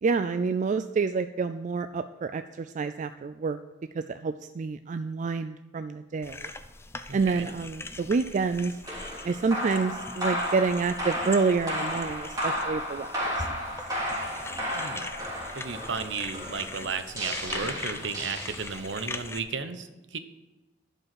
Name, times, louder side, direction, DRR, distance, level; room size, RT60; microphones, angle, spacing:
voice 1, 0.0-3.6 3.9-6.5 7.1-8.8 9.2-13.5, right 4 dB, 40° right, 10 dB, 0.3 m, -28 dB
sound 1, 6.2-19.4, left 3 dB, 15° left, 0.5 m, -41 dB
voice 2, 7.1-7.5 14.7-15.1 15.5-20.2, right 5 dB, 65° right, 10 dB, 0.9 m, -34 dB
sound 2, 8.8-19.0, equal, 20° right, 3.2 m, -33 dB
11.5 x 5.5 x 7.6 m, 1.1 s
head